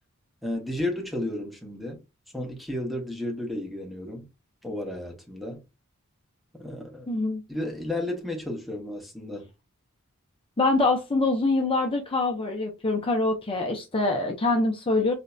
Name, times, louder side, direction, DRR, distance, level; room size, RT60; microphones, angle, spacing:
voice 1, 0.4-2.0 2.3-4.3 4.6-5.6 6.6-7.2 7.5-9.5, left 1 dB, ahead, 0.8 m, -33 dB
voice 2, 7.1-7.4 10.6-15.1, left 2 dB, 25° left, 0.6 m, -24 dB
4.1 x 2.7 x 2.3 m
head